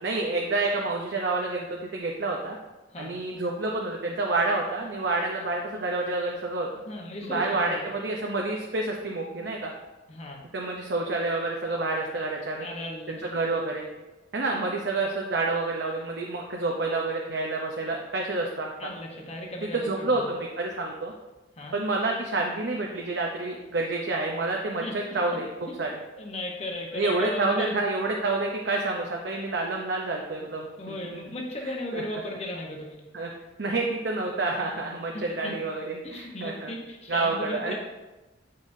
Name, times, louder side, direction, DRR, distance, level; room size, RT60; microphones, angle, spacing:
voice 1, 0.0-2.6 3.0-6.7 7.2-9.7 10.5-12.7 13.1-13.9 14.3-18.9 19.6-21.1 21.7-25.9 26.9-31.0 31.3-31.4 31.6-32.0 33.1-33.3 33.6-36.7 37.1-37.7, right 2 dB, 65° right, 0 dB, 0.7 m, -28 dB
voice 2, 6.8-7.8 10.1-10.4 12.6-13.2 18.8-20.3 21.6-21.8 24.8-24.9 25.8-25.9 26.2-27.7 30.8-33.0 35.1-35.5 36.0-37.7, left 1 dB, 35° left, 0 dB, 0.9 m, -36 dB
8.2 x 5.4 x 2.7 m, 1.1 s
head